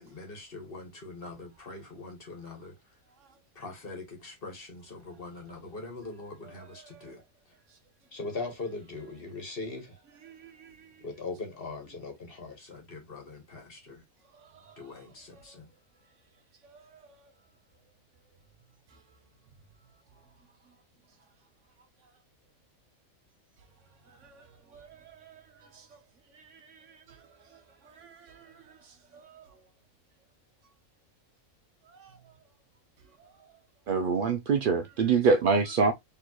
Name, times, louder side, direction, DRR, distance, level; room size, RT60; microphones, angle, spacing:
voice 1, 0.0-2.7 3.5-7.2 8.1-10.0 11.0-14.0 14.8-15.7, left 3 dB, 45° left, 1.4 m, -41 dB
voice 2, 10.3-10.9 14.7-14.8 16.6-17.0 24.2-24.4 24.7-25.4 25.7-25.8 26.3-27.0 27.8-28.5 29.1-29.4 31.9-32.2, right 7 dB, 60° right, 1.2 m, -53 dB
voice 3, 33.9-35.9, right 5 dB, 85° right, 0.4 m, -24 dB
4.4 x 3.2 x 2.9 m
omnidirectional pair, 1.5 m